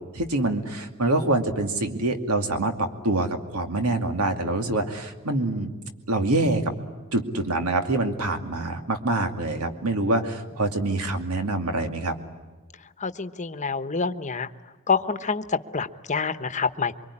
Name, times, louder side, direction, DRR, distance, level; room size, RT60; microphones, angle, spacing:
voice 1, 0.0-5.7 6.1-6.6 7.1-12.1, right 2 dB, 85° right, 6 dB, 2.5 m, -25 dB
voice 2, 13.0-14.5 14.9-17.0, left 5 dB, 35° left, 11 dB, 1.0 m, -27 dB
24.5 x 24.0 x 9.9 m, 1.3 s
head